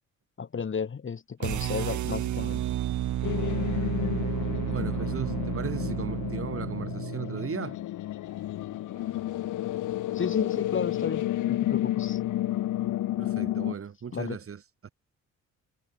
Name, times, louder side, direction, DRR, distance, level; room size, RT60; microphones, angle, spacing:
voice 1, 0.4-2.6 10.1-12.2 14.1-14.4, left 6 dB, 40° left, 6.0 m, -33 dB
sound 1, 1.4-7.6, right 12 dB, 75° right, 4.2 m, -31 dB
sound 2, 3.2-13.7, left 14 dB, 85° left, 7.3 m, -31 dB
voice 2, 4.7-7.8 13.2-14.9, right 7 dB, 45° right, 3.9 m, -37 dB
cardioid pair, 90°, 30 cm